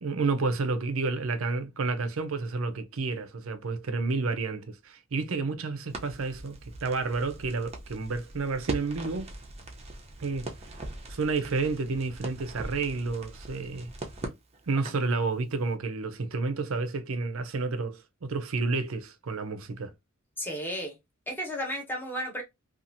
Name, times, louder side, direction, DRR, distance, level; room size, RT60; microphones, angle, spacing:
voice 1, 0.0-9.3 10.2-10.5 11.1-13.9 14.7-19.9, right 3 dB, 85° right, 0.6 m, -30 dB
Crackle, 5.9-15.1, right 2 dB, 30° right, 0.6 m, -41 dB
voice 2, 20.4-21.0 21.3-22.4, equal, 10° left, 0.9 m, -33 dB
2.8 x 2.4 x 2.5 m
head